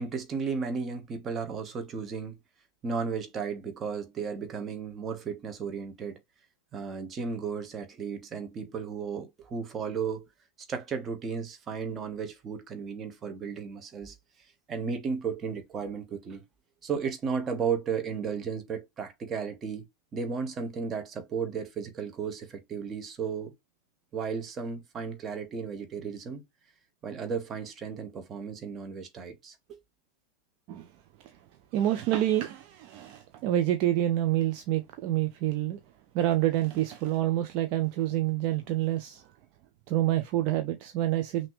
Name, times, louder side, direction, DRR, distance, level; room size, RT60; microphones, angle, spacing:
voice 1, 0.0-2.4 2.8-6.2 6.7-10.2 10.7-14.1 14.7-16.4 16.8-19.9 20.1-23.5 24.1-26.4 27.0-29.8, right 6 dB, 25° right, 1.3 m, -34 dB
voice 2, 31.7-35.8 36.1-39.3 39.9-41.5, right 13 dB, 45° right, 0.7 m, -27 dB
5.8 x 2.9 x 3.1 m
figure-of-eight pair, 90°, 0 cm